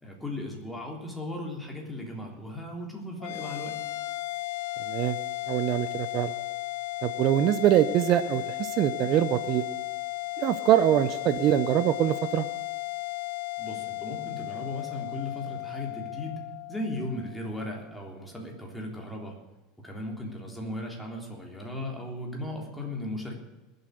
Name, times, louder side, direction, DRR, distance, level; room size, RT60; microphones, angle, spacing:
voice 1, 0.0-3.8 13.6-16.4 16.7-19.4 19.8-23.4, left 1 dB, 5° left, -1 dB, 3.6 m, -36 dB
sound 1, 3.2-17.8, left 21 dB, 75° left, 0.8 m, -35 dB
voice 2, 4.9-5.2 5.5-6.3 7.0-9.6 10.4-12.5, right 12 dB, 45° right, 11 dB, 0.8 m, -24 dB
21.0 x 8.1 x 6.6 m, 1.1 s
supercardioid pair, 135°, 0 cm